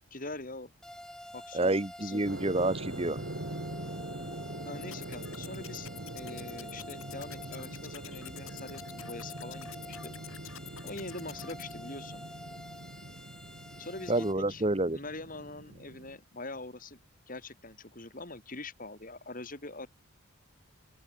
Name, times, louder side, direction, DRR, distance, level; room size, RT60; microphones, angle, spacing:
voice 1, 0.1-0.7 1.3-2.2 4.6-5.9 6.1-10.1 10.8-12.2 13.8-14.6 14.9-17.0 17.3-19.9, left 2 dB, 40° left, 3.1 m, -43 dB
sound 1, 0.8-14.3, left 1 dB, 5° left, 1.7 m, -49 dB
voice 2, 1.5-3.2 14.1-15.0, right 2 dB, 25° right, 1.3 m, -28 dB
sound 2, 2.2-16.2, right 1 dB, 60° right, 2.7 m, -43 dB
sound 3, 4.8-11.7, left 10 dB, 70° left, 6.8 m, -49 dB
open air
head